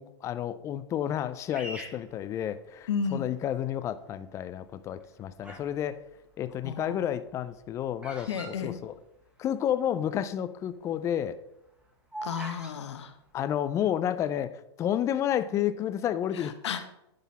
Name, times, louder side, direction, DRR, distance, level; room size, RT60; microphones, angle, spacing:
voice 1, 0.0-6.0 6.4-9.0 9.4-11.4 13.3-16.5, left 10 dB, 20° left, 12 dB, 0.4 m, -31 dB
Bird vocalization bird call bird song, 1.5-3.0 3.6-4.1 4.8-5.8 6.0-9.5 9.8-9.9 10.1-10.4 10.9-12.8, right 1 dB, 5° right, 1.2 m, -43 dB
voice 2, 2.9-3.3 6.6-7.0 8.3-8.8 12.2-13.1 16.6-16.8, left 6 dB, 75° left, 8 dB, 1.1 m, -32 dB
11.0 x 4.0 x 4.2 m, 0.84 s
hypercardioid pair, 135°, 15 cm